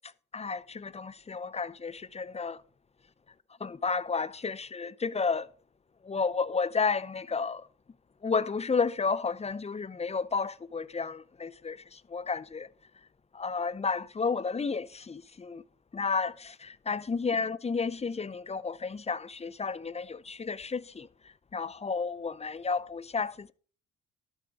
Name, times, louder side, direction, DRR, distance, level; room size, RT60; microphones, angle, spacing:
voice 1, 0.3-2.6 3.6-5.5 6.0-7.6 8.2-12.7 13.3-15.6 15.9-16.6 16.9-21.1 21.5-23.5, left 5 dB, 20° left, 0.6 m, -32 dB
11.0 x 7.1 x 4.8 m
supercardioid pair, 65°, 33 cm